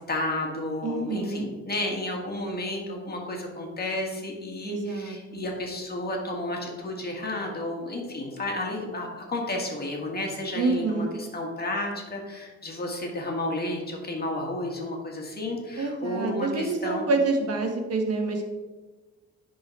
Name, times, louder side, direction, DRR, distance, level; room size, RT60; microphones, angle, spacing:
voice 1, 0.0-17.1, left 1 dB, 30° left, 0 dB, 1.8 m, -32 dB
voice 2, 0.8-1.5 4.6-5.4 10.5-11.1 15.8-18.5, right 3 dB, 55° right, 3 dB, 1.4 m, -27 dB
10.5 x 3.9 x 4.1 m, 1.3 s
cardioid pair, 90°, 30 cm